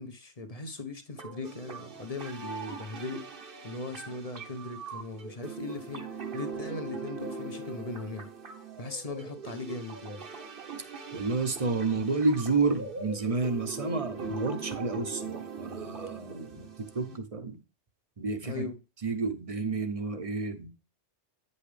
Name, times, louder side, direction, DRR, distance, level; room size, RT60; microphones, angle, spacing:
voice 1, 0.0-8.3 8.8-10.2 17.0-17.2 18.4-18.8, left 3 dB, 35° left, 0.9 m, -39 dB
sound 1, 1.2-17.2, right 4 dB, 50° right, 1.1 m, -41 dB
voice 2, 11.1-17.6 18.2-18.7 19.0-20.7, right 3 dB, 35° right, 0.8 m, -30 dB
9.0 x 5.5 x 3.3 m
omnidirectional pair, 1.2 m